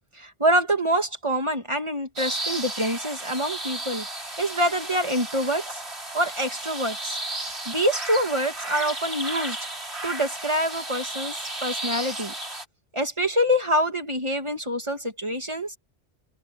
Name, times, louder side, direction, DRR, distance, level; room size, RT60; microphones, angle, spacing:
voice 1, 0.1-5.8 6.1-7.2 7.7-9.6 10.0-12.3 12.9-15.8, equal, 25° right, 2.2 m, -26 dB
sound 1, 2.2-12.6, right 1 dB, 70° right, 5.4 m, -34 dB
open air
omnidirectional pair, 1.1 m